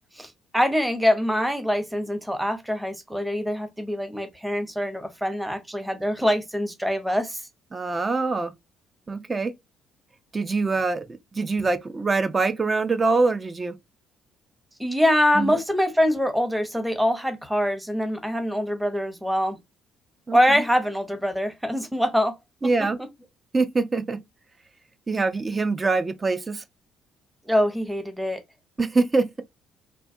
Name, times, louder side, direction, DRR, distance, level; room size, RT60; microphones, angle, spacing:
voice 1, 0.1-7.4 14.8-19.6 20.3-22.4 23.0-23.1 27.5-28.4, equal, 5° right, 0.8 m, -24 dB
voice 2, 7.7-8.5 9.1-9.5 10.3-11.0 11.3-13.7 15.4-15.6 20.3-20.6 22.6-23.0 23.5-24.2 25.1-26.6 28.8-29.4, right 3 dB, 30° right, 0.4 m, -24 dB
2.3 x 2.2 x 2.6 m
hypercardioid pair, 55°, 0 cm